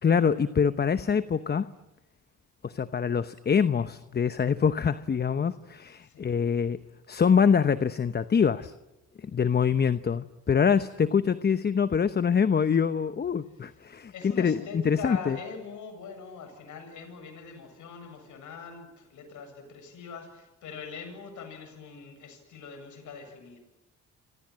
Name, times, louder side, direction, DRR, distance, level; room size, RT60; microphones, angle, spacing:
voice 1, 0.0-1.7 2.6-6.8 7.1-8.7 9.2-14.1 14.4-15.4, left 6 dB, 35° left, 12 dB, 0.9 m, -25 dB
voice 2, 6.0-6.4 13.5-13.8 14.1-23.6, left 5 dB, 75° left, 7 dB, 7.9 m, -42 dB
28.0 x 27.0 x 7.6 m, 0.98 s
cardioid pair, 90°, 30 cm